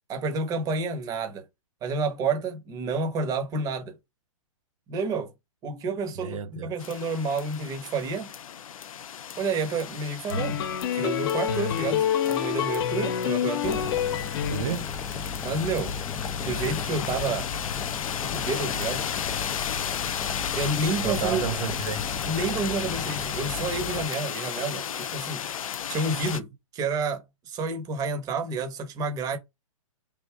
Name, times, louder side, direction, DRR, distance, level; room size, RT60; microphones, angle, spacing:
voice 1, 0.1-1.4 1.8-3.9 4.9-5.3 5.6-8.3 9.4-10.6 10.9-13.9 15.4-15.9 16.4-17.5 18.2-19.1 20.6-21.6 22.2-25.5 25.9-29.4, right 3 dB, 20° right, 1.0 m, -30 dB
voice 2, 6.2-6.7 14.5-14.9 21.0-22.1, right 8 dB, 70° right, 0.5 m, -31 dB
sound 1, 6.8-26.4, left 9 dB, 75° left, 0.5 m, -34 dB
sound 2, 10.3-14.9, left 9 dB, 45° left, 0.9 m, -27 dB
sound 3, 13.6-24.0, left 5 dB, 15° left, 0.5 m, -35 dB
3.5 x 2.5 x 4.6 m
hypercardioid pair, 145°, 18 cm